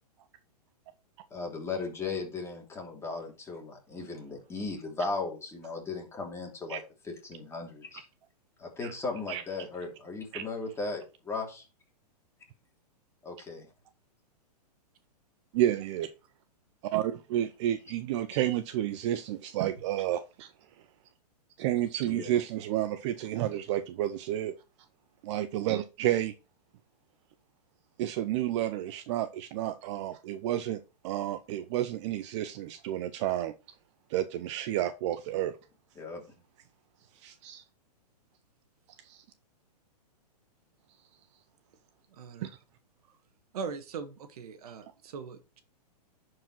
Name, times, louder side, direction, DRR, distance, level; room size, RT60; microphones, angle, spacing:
voice 1, 1.3-8.0 8.6-11.7 13.2-13.7 22.0-22.4 35.9-36.2, left 3 dB, 10° left, 3.0 m, -37 dB
voice 2, 15.5-16.1 16.8-20.5 21.6-24.5 25.2-26.3 28.0-33.5 34.1-35.6 37.2-37.6 39.0-39.2 42.4-42.5, right 12 dB, 45° right, 0.7 m, -31 dB
voice 3, 42.1-42.5 43.5-45.6, right 5 dB, 65° right, 1.5 m, -40 dB
10.5 x 4.8 x 4.4 m
hypercardioid pair, 125°, 21 cm